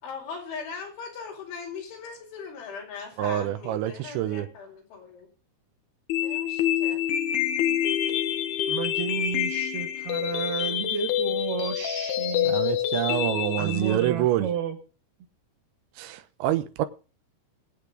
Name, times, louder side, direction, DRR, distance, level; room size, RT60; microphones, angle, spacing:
voice 1, 0.0-5.3 6.2-7.0, left 5 dB, 85° left, 7.5 m, -39 dB
voice 2, 3.2-4.5 12.5-14.5 16.0-16.9, right 13 dB, 85° right, 3.3 m, -27 dB
sound 1, 6.1-14.1, left 10 dB, 70° left, 3.1 m, -27 dB
voice 3, 8.7-12.6 13.6-14.8, right 7 dB, 65° right, 4.2 m, -32 dB
22.0 x 8.4 x 3.8 m
omnidirectional pair, 5.3 m